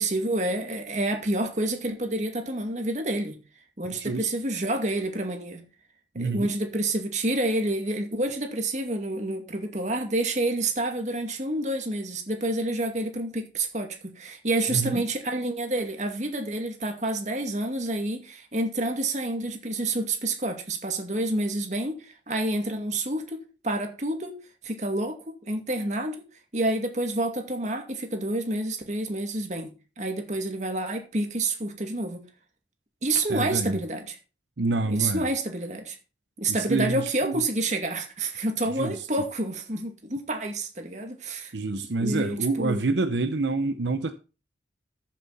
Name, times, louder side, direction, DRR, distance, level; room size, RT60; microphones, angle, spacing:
voice 1, 0.0-3.4 3.8-5.6 6.1-24.4 24.6-26.2 26.5-32.2 33.0-34.2 34.8-36.0 36.4-41.5 41.9-42.9, right 2 dB, 40° right, 2.3 m, -28 dB
voice 2, 6.2-6.5 14.7-15.0 33.3-33.8 34.6-35.3 36.5-37.4 38.8-39.0 41.5-44.1, right 3 dB, 80° right, 0.8 m, -27 dB
13.5 x 7.6 x 4.1 m
head